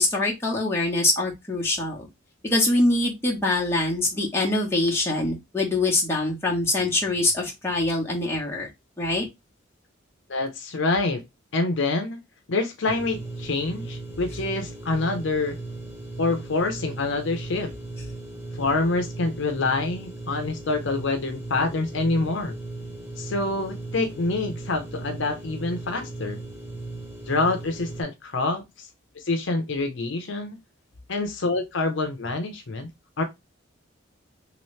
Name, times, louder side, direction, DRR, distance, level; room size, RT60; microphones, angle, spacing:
voice 1, 0.0-2.1 2.4-8.7 9.0-9.3, left 2 dB, 10° left, 1.1 m, -24 dB
voice 2, 10.3-11.2 11.5-12.2 12.5-15.6 16.2-17.7 18.6-22.6 23.2-26.4 27.3-28.9 29.2-30.6 31.1-32.9 33.2-33.3, left 3 dB, 65° left, 0.6 m, -26 dB
sound 1, 12.9-28.0, right 2 dB, 5° right, 0.9 m, -37 dB
3.1 x 3.0 x 3.1 m
head